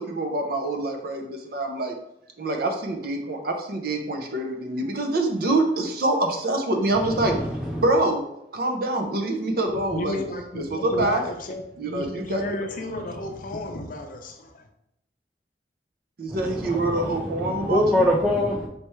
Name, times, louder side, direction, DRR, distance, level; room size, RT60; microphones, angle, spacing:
voice 1, 0.0-1.9 2.4-7.3 7.8-8.2 8.5-10.2 10.5-11.2 11.8-12.4 16.2-18.0, right 2 dB, 55° right, 4 dB, 0.6 m, -25 dB
voice 2, 6.9-7.9 16.3-18.7, left 1 dB, 5° right, -2 dB, 0.3 m, -25 dB
voice 3, 9.9-14.7, left 1 dB, 50° left, 4 dB, 0.5 m, -33 dB
4.3 x 3.3 x 3.1 m, 0.80 s
head